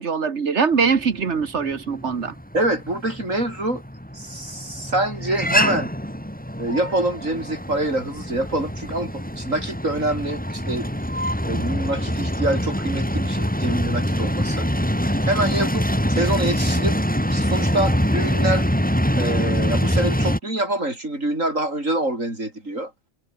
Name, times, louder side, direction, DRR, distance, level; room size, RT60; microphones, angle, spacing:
voice 1, 0.0-2.3, right 5 dB, 60° right, 1.7 m, -22 dB
sound 1, 0.9-20.4, equal, 5° left, 5.5 m, -24 dB
voice 2, 2.5-3.8 4.1-5.9 6.6-10.9 11.4-14.7 15.2-17.0 17.3-18.7 19.1-22.9, right 1 dB, 85° right, 8.2 m, -25 dB
omnidirectional pair, 1.3 m